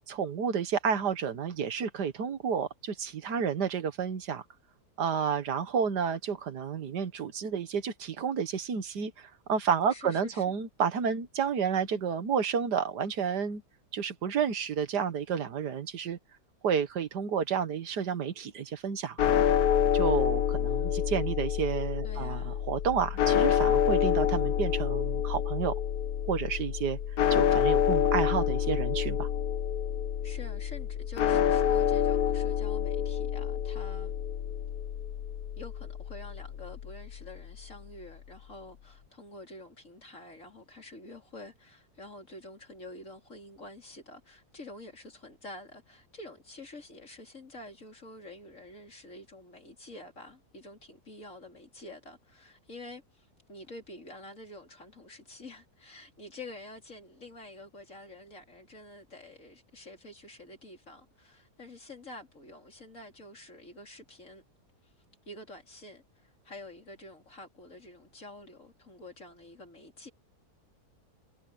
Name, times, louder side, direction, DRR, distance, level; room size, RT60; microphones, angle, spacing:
voice 1, 0.1-4.4 5.0-13.6 13.9-16.2 16.6-19.4 19.9-25.7 26.3-27.0 27.3-29.3, right 7 dB, 90° right, 1.9 m, -30 dB
voice 2, 9.9-10.5 20.7-20.9 22.0-22.6 30.2-34.1 35.6-64.4 64.8-64.9 65.3-70.1, left 2 dB, 50° left, 4.6 m, -48 dB
sound 1, 19.2-37.4, left 9 dB, 70° left, 1.2 m, -28 dB
omnidirectional pair, 1.7 m